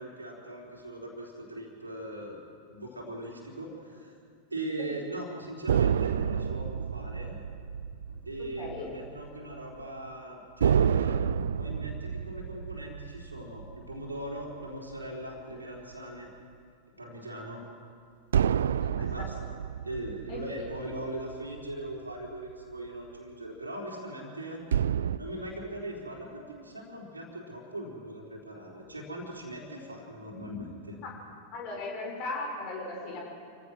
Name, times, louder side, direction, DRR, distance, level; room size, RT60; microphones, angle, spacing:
voice 1, 0.0-2.4 2.7-4.1 4.5-7.4 8.1-11.2 11.6-16.3 17.0-17.7 19.0-19.3 19.8-24.6 25.2-31.0, right 1 dB, 80° right, -2 dB, 4.0 m, -40 dB
sound 1, 5.7-9.4 9.6-9.8 10.6-15.2 18.3-21.9 24.7-25.2, right 8 dB, 65° right, 0.5 m, -29 dB
voice 2, 8.6-8.9 18.8-19.3 20.3-20.4 31.5-33.2, left 2 dB, 40° left, 0 dB, 5.8 m, -37 dB
28.5 x 15.5 x 6.3 m, 2.2 s
figure-of-eight pair, 90°, 0 cm